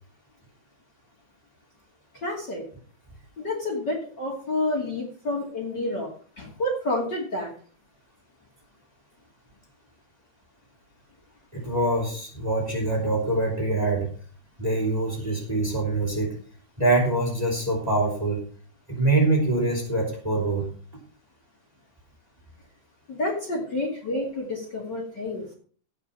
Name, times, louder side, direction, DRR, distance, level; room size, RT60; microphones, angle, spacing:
voice 1, 2.2-2.6 3.4-6.1 6.4-7.5 23.1-25.5, left 1 dB, 35° left, -1 dB, 3.0 m, -29 dB
voice 2, 11.5-14.1 14.6-16.3 16.8-18.4 18.9-20.7, right 2 dB, 10° right, 0 dB, 3.2 m, -24 dB
17.5 x 6.0 x 5.5 m, 0.43 s
omnidirectional pair, 3.7 m